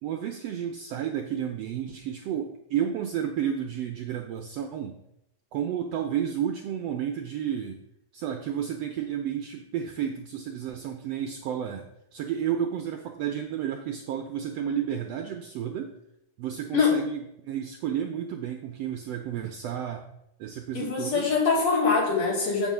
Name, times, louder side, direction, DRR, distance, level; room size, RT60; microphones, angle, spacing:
voice 1, 0.0-5.0 5.5-7.8 8.1-15.9 16.4-20.1 20.4-21.3, right 9 dB, 80° right, 4 dB, 1.4 m, -31 dB
voice 2, 20.7-22.7, left 5 dB, 60° left, -5 dB, 4.0 m, -23 dB
7.3 x 5.5 x 7.4 m, 0.81 s
omnidirectional pair, 3.6 m